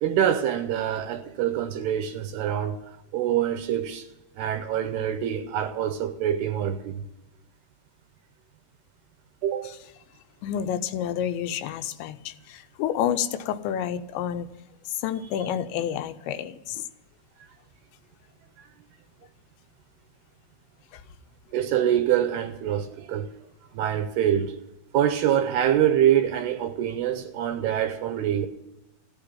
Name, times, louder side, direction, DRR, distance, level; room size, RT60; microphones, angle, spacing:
voice 1, 0.0-2.8 3.1-4.1 4.4-7.0 9.4-9.7 18.6-18.7 21.5-23.3 23.7-24.6 24.9-28.5, right 10 dB, 80° right, 2.6 m, -25 dB
voice 2, 10.4-14.5 14.9-16.9 20.9-21.0, left 9 dB, 85° left, 3.0 m, -29 dB
15.5 x 8.8 x 10.0 m
omnidirectional pair, 5.1 m